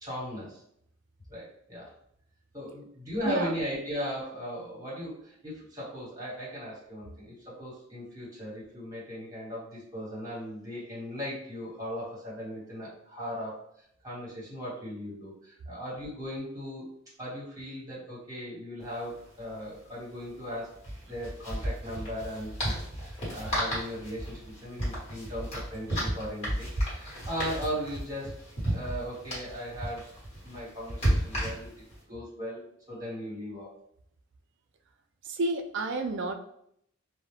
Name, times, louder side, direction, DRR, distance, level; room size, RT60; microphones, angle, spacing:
voice 1, 0.0-0.6 1.3-1.9 2.5-13.6 14.0-16.9 17.2-20.8 21.1-28.3 28.7-30.0 30.4-31.7 32.1-33.7, equal, 20° right, -6 dB, 1.2 m, -37 dB
sound 1, 18.8-18.9 19.1-19.3 20.7-32.0, equal, 35° left, 1.2 m, -33 dB
voice 2, 35.2-36.3, right 3 dB, 60° right, 6 dB, 0.3 m, -30 dB
2.2 x 2.1 x 3.1 m, 0.71 s
head